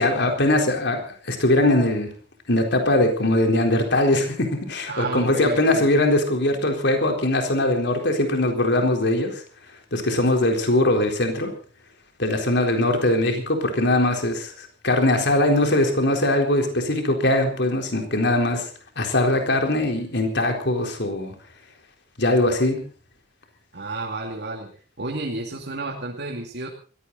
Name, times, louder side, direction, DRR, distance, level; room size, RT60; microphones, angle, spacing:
voice 1, 0.0-2.1 2.5-9.4 9.9-11.5 12.2-18.7 19.0-21.3 22.2-22.8, left 1 dB, 60° left, 4 dB, 4.1 m, -21 dB
voice 2, 4.9-5.9 23.7-24.7 25.0-26.7, right 2 dB, 60° right, 0 dB, 2.6 m, -31 dB
21.5 x 16.5 x 4.1 m, 0.38 s
head